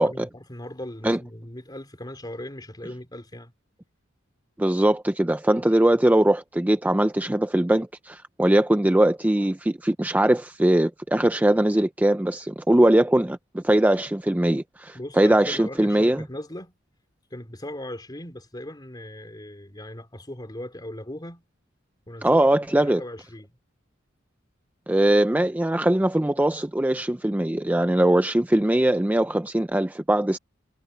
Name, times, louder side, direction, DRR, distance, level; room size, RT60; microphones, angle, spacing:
voice 1, 0.0-3.5 14.9-16.8 17.3-21.4 22.1-23.5, left 1 dB, 20° left, 3.3 m, -38 dB
voice 2, 4.6-16.2 22.2-23.0 24.9-30.4, right 1 dB, 10° right, 0.4 m, -21 dB
head